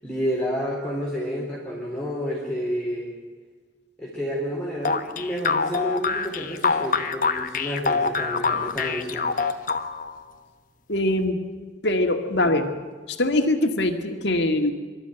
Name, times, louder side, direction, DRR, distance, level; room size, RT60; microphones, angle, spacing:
voice 1, 0.0-3.1 4.0-9.3, equal, 5° left, -6 dB, 3.8 m, -30 dB
sound 1, 4.8-10.2, left 4 dB, 45° left, 1.1 m, -25 dB
voice 2, 10.9-11.4 11.8-12.7 13.1-14.7, left 1 dB, 70° left, 6 dB, 2.1 m, -22 dB
25.5 x 13.0 x 9.2 m, 1.5 s
head